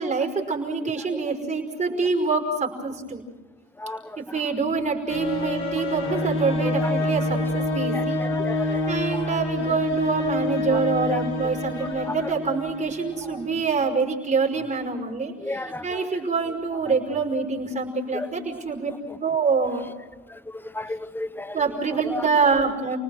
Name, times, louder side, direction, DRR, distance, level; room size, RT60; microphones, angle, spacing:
voice 1, 0.0-3.2 4.2-8.2 8.6-18.9 19.2-19.9 21.5-23.0, right 4 dB, 35° right, 2 dB, 5.2 m, -26 dB
voice 2, 3.8-4.2 6.6-6.9 7.9-8.9 11.1-11.2 12.1-12.3 15.4-16.1 18.1-18.3 20.3-20.4 20.7-21.5 22.1-22.2, left 1 dB, 10° left, 15 dB, 0.9 m, -33 dB
sound 1, 5.1-13.4, left 2 dB, 80° left, 4.5 m, -27 dB
30.0 x 19.5 x 6.4 m, 1.3 s
cardioid pair, 90°, 20 cm